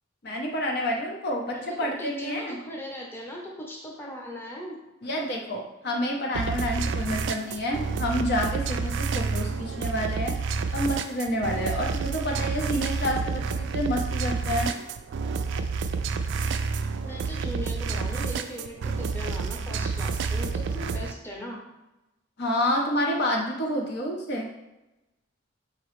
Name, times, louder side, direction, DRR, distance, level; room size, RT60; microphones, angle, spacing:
voice 1, 0.2-2.6 5.0-10.4 10.7-14.7 22.4-24.5, equal, 60° left, 0 dB, 0.7 m, -28 dB
voice 2, 1.5-4.8 17.0-21.6, equal, 10° left, -2 dB, 0.7 m, -38 dB
sound 1, 6.3-21.1, right 4 dB, 65° right, 0.3 m, -29 dB
4.9 x 3.0 x 3.1 m, 0.98 s
head